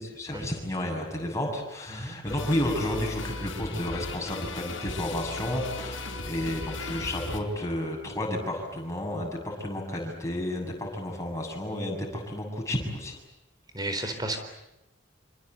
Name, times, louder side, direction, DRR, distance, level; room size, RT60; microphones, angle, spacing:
voice 1, 0.0-13.2, left 1 dB, 15° left, 0 dB, 7.3 m, -32 dB
sound 1, 2.3-7.4, left 2 dB, 80° left, 5.0 m, -36 dB
voice 2, 13.7-14.4, right 2 dB, 20° right, 7 dB, 4.0 m, -32 dB
27.0 x 26.5 x 8.2 m, 0.92 s
head